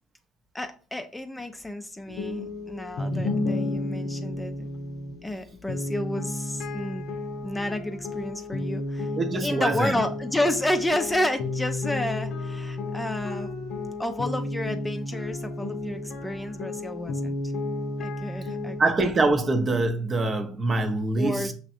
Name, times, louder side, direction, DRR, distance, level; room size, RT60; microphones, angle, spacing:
voice 1, 0.5-4.7 5.2-7.1 7.4-9.1 9.4-13.5 14.0-17.4 18.0-18.8 21.2-21.5, left 1 dB, 10° left, 0.5 m, -30 dB
sound 1, 2.1-18.8, left 2 dB, 55° left, 0.7 m, -32 dB
voice 2, 9.2-10.0 18.8-21.5, right 2 dB, 35° right, 0.7 m, -24 dB
6.0 x 3.1 x 2.6 m
hypercardioid pair, 60°, 0 cm